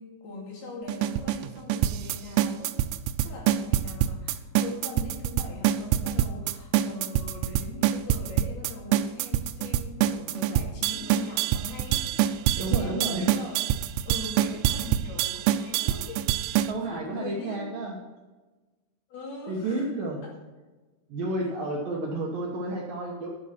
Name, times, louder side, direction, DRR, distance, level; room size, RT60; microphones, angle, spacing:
voice 1, 0.0-2.9 3.2-13.7 14.0-16.6 16.9-17.7 19.1-19.9 20.2-20.3, left 3 dB, 60° left, -1 dB, 3.7 m, -41 dB
sound 1, 0.9-16.7, right 12 dB, 85° right, 3.1 m, -25 dB
voice 2, 12.6-13.3 16.7-18.0 19.5-20.2 21.1-23.3, right 2 dB, 65° right, -2 dB, 2.3 m, -31 dB
12.5 x 7.2 x 5.9 m, 1.2 s
omnidirectional pair, 5.6 m